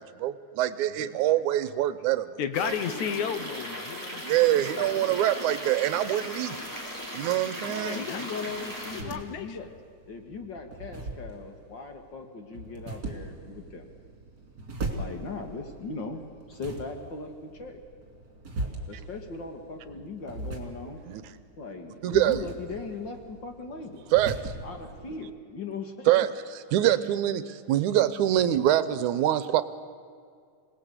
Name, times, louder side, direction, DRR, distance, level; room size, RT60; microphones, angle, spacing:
voice 1, 0.0-2.3 4.3-6.6 7.1-8.0 21.1-21.2 22.0-22.4 24.1-24.4 26.1-26.3 26.7-29.6, right 12 dB, 80° right, 13 dB, 2.2 m, -24 dB
voice 2, 2.4-4.8 7.8-8.5 8.9-9.6, left 8 dB, 70° left, 10 dB, 2.4 m, -33 dB
sound 1, 2.5-9.0, equal, 5° left, 4.3 m, -37 dB
voice 3, 7.6-9.7 10.1-13.9 15.0-16.2 16.5-17.8 18.9-21.0 21.6-24.0 24.6-26.3, left 4 dB, 40° left, 4 dB, 2.1 m, -39 dB
sound 2, 8.4-25.2, right 2 dB, 35° right, 3.2 m, -40 dB
27.0 x 19.0 x 8.2 m, 2.1 s
omnidirectional pair, 3.6 m